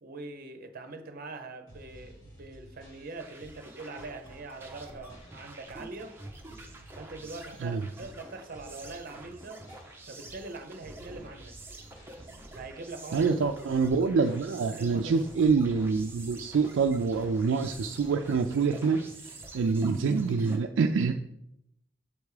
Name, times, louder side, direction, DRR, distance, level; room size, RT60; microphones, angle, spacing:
voice 1, 0.0-6.2 6.9-9.6 10.1-11.6 12.5-13.3 14.7-15.2, right 3 dB, 50° right, 7 dB, 0.7 m, -43 dB
sound 1, 1.7-20.0, equal, 65° left, 2.7 m, -53 dB
sound 2, 3.2-20.6, right 2 dB, 10° right, 0.7 m, -48 dB
voice 2, 13.1-21.1, right 5 dB, 75° right, 4 dB, 0.4 m, -26 dB
7.1 x 3.5 x 4.8 m, 0.79 s
head